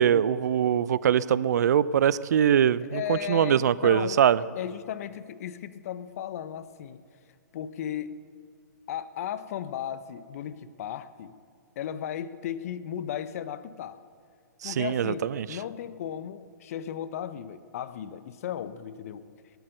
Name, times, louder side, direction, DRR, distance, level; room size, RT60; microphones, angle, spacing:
voice 1, 0.0-4.4 14.6-15.5, right 9 dB, 60° right, 19 dB, 0.5 m, -23 dB
voice 2, 2.9-4.2 4.6-7.0 7.5-8.1 8.9-11.4 11.8-14.0 14.6-19.3, left 10 dB, 50° left, 14 dB, 0.9 m, -35 dB
18.5 x 12.0 x 6.6 m, 2.1 s
hypercardioid pair, 130°, 10 cm